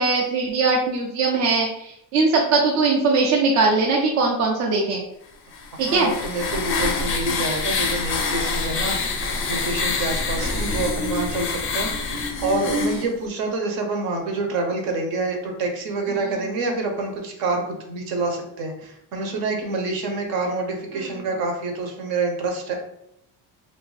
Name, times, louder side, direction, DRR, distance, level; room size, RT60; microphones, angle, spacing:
voice 1, 0.0-5.0 5.8-6.1 10.4-10.6 21.0-21.1, right 3 dB, 45° right, -1 dB, 0.6 m, -21 dB
sound 1, 5.5-13.1, left 3 dB, 35° left, 0.4 m, -26 dB
voice 2, 5.9-22.8, right 2 dB, 65° right, 3 dB, 0.9 m, -27 dB
2.7 x 2.6 x 3.9 m, 0.78 s
cardioid pair, 165°, 38 cm